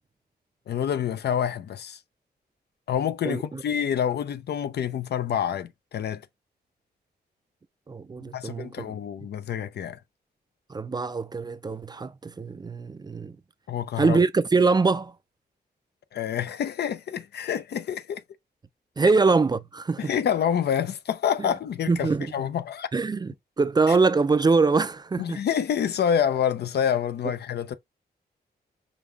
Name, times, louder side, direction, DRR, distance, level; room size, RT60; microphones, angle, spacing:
voice 1, 0.7-2.0 2.9-6.2 8.3-10.0 13.7-14.2 16.1-18.2 20.0-22.9 23.9-24.0 25.2-27.7, left 8 dB, 75° left, 0.5 m, -27 dB
voice 2, 3.2-3.6 7.9-8.9 10.7-13.4 14.0-15.1 19.0-20.1 21.9-22.3 22.9-25.4, right 4 dB, 25° right, 0.4 m, -23 dB
5.3 x 2.3 x 3.4 m
wide cardioid pair, 125°, 17 cm